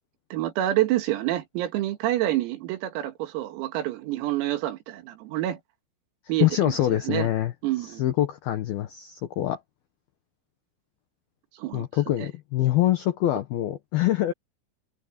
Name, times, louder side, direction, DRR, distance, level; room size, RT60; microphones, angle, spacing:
voice 1, 0.3-5.6 6.3-6.5 7.1-7.3 7.6-8.0 11.6-12.3, right 14 dB, 85° right, 4.8 m, -27 dB
voice 2, 6.4-7.5 7.8-9.6 11.7-14.3, left 13 dB, 80° left, 2.2 m, -25 dB
omnidirectional pair, 6.0 m